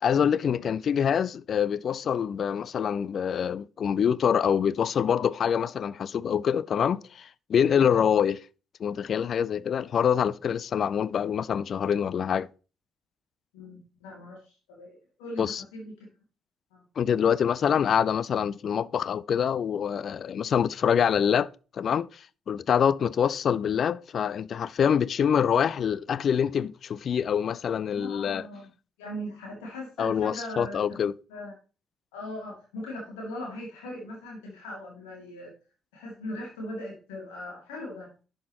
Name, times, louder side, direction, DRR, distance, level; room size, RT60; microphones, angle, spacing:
voice 1, 0.0-8.4 8.8-12.5 15.4-15.6 17.0-21.5 21.8-22.1 22.5-28.5 30.0-31.1, left 8 dB, 45° left, 0.3 m, -25 dB
voice 2, 13.5-16.1 16.7-16.8 27.9-28.7 29.0-31.0 31.3-31.5 32.1-35.5 35.9-38.1, left 1 dB, 70° left, 2.5 m, -39 dB
11.0 x 6.5 x 3.0 m
figure-of-eight pair, 45°, 0 cm